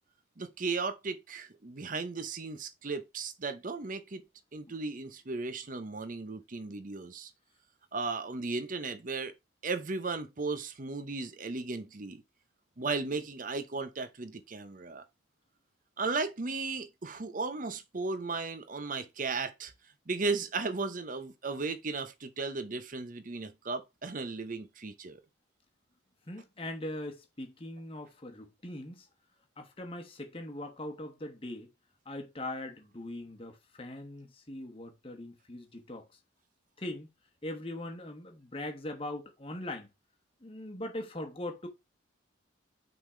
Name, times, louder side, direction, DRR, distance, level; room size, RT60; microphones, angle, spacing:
voice 1, 0.4-4.2 4.5-7.3 7.9-9.3 9.6-12.2 12.8-15.0 16.0-19.7 20.1-25.2, right 3 dB, 40° right, 0.7 m, -35 dB
voice 2, 26.3-29.1 29.6-31.7 32.0-36.1 36.8-37.1 37.4-39.9 40.4-41.7, left 1 dB, 25° left, 1.2 m, -41 dB
5.8 x 3.8 x 4.9 m
head